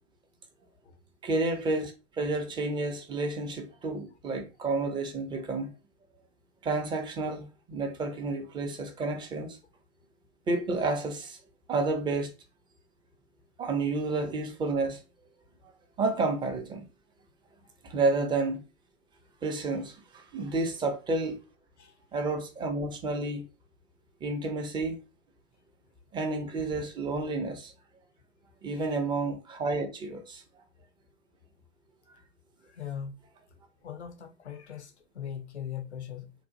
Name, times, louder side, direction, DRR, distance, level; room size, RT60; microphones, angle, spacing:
voice 1, 1.2-5.7 6.6-9.6 10.5-11.4 11.7-12.3 13.6-15.0 16.0-16.8 17.8-18.6 19.4-21.4 22.1-23.4 24.2-25.0 26.1-27.7 28.6-30.4, right 3 dB, 15° right, 0.5 m, -30 dB
voice 2, 32.6-33.2 33.8-36.3, left 9 dB, 90° left, 0.6 m, -40 dB
2.8 x 2.0 x 2.6 m
hypercardioid pair, 105°, 32 cm